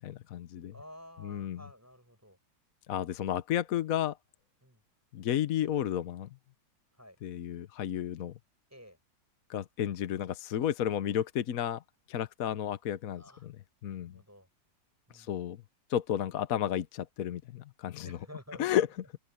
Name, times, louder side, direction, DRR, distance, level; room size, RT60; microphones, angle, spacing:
voice 1, 0.0-0.7 1.2-1.6 2.9-4.2 5.1-6.3 7.2-8.3 9.5-11.8 12.1-13.6 13.8-14.2 15.1-15.6 15.9-18.2 18.6-18.9, left 10 dB, 60° left, 1.1 m, -32 dB
voice 2, 0.7-2.4 4.6-4.8 6.9-7.2 8.7-9.0 13.2-13.5 13.9-14.5 15.1-15.3 18.0-18.8, equal, 10° right, 6.4 m, -52 dB
open air
omnidirectional pair, 2.0 m